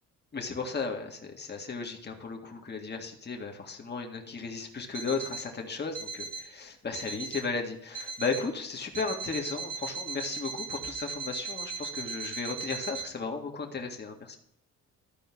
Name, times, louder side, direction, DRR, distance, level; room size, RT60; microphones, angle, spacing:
voice 1, 0.3-14.4, left 4 dB, 35° left, 3 dB, 1.9 m, -35 dB
Alarm, 4.9-5.5 5.9-6.5 6.9-7.5 7.9-8.5 8.9-13.1, right 5 dB, 25° right, 1.9 m, -38 dB
13.5 x 4.6 x 6.0 m, 0.78 s
cardioid pair, 90°, 30 cm